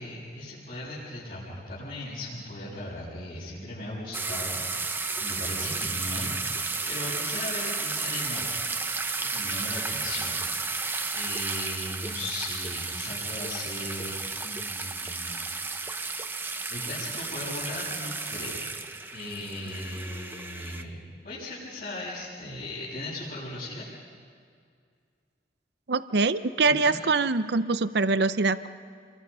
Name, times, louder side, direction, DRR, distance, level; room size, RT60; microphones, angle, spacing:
voice 1, 0.0-6.3 6.9-8.5 9.2-10.4 11.1-15.5 16.7-18.6 19.1-23.8 26.6-27.0, left 1 dB, 50° left, -10 dB, 7.1 m, -38 dB
sound 1, 4.1-20.8, right 3 dB, 10° right, 0.8 m, -33 dB
voice 2, 25.9-28.7, right 3 dB, 65° right, 13 dB, 0.7 m, -24 dB
29.0 x 23.5 x 5.6 m, 2.2 s
head